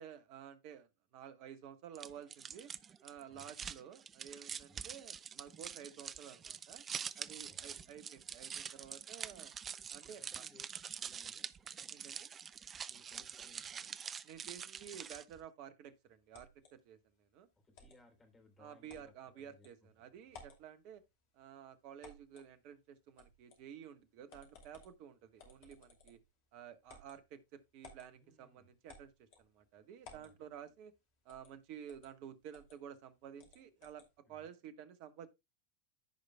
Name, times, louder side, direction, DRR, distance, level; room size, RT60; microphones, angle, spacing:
voice 1, 0.0-2.7 3.0-6.8 7.2-9.5 9.9-10.2 11.9-12.3 14.2-17.5 18.6-21.0 21.3-26.2 26.5-30.9 31.2-35.3, right 9 dB, 45° right, 1.2 m, -52 dB
sound 1, 1.9-15.4, right 7 dB, 25° right, 0.4 m, -46 dB
voice 2, 7.2-8.0 10.0-10.7 11.0-11.9 12.9-14.0 17.6-20.4 28.1-28.7 30.1-30.7 34.3-34.5, left 1 dB, 15° left, 3.3 m, -66 dB
sound 2, 16.3-16.7 17.7-18.0 18.9-19.1 19.6-19.7 20.3-20.6 22.0-22.5 23.2-23.6 24.3-25.0 25.4-26.3 26.9-27.2 27.8-28.1 28.9-29.5 30.0-30.3 31.3-31.5 31.9-32.1 32.5-32.8 33.4-34.1, left 3 dB, 45° left, 2.5 m, -57 dB
14.5 x 5.1 x 2.2 m
figure-of-eight pair, 90°, 0 cm